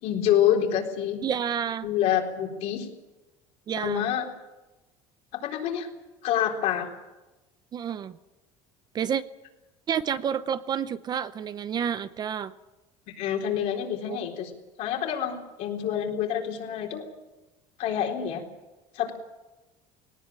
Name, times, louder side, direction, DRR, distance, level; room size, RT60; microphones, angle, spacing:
voice 1, 0.0-1.2 1.8-2.9 3.8-4.3 5.4-5.9 6.2-6.9 13.2-14.5 14.8-17.0 17.8-18.4 18.9-19.1, left 10 dB, 65° left, 1 dB, 3.9 m, -27 dB
voice 2, 1.2-1.9 3.7-4.0 7.7-8.1 8.9-9.2 9.9-12.5 14.1-14.2, right 8 dB, 35° right, 14 dB, 0.7 m, -29 dB
19.0 x 18.0 x 8.9 m, 1.1 s
cardioid pair, 140°, 13 cm